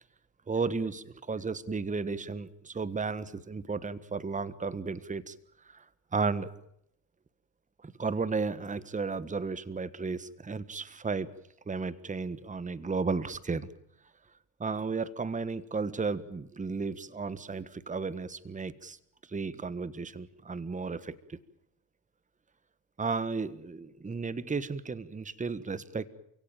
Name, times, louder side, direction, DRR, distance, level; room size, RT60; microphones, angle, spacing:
voice 1, 0.5-5.3 5.6-5.8 6.1-6.5 7.8-11.3 11.7-13.7 14.6-19.0 19.3-21.4 23.0-26.1, right 4 dB, 15° right, 16 dB, 1.4 m, -34 dB
29.0 x 17.0 x 9.0 m, 0.74 s
supercardioid pair, 85°, 46 cm